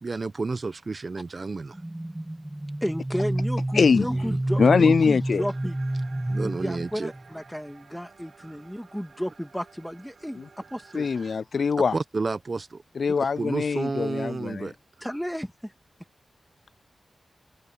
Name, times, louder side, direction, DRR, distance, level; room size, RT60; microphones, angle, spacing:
voice 1, 0.0-1.8 4.0-4.4 6.3-7.1 11.9-12.8 13.4-14.7, right 3 dB, 45° right, 1.0 m, -31 dB
sound 1, 1.7-7.3, right 1 dB, 15° right, 1.6 m, -29 dB
voice 2, 2.8-5.8 6.4-10.5 10.7-11.1 13.2-13.3 15.0-15.7, equal, ahead, 2.1 m, -33 dB
voice 3, 3.7-4.1 4.6-5.4 10.4-10.5 10.9-12.0 13.0-14.7, left 5 dB, 65° left, 0.3 m, -22 dB
FX Sad John, 5.4-11.4, right 5 dB, 65° right, 4.0 m, -52 dB
wide cardioid pair, 85°, 0 cm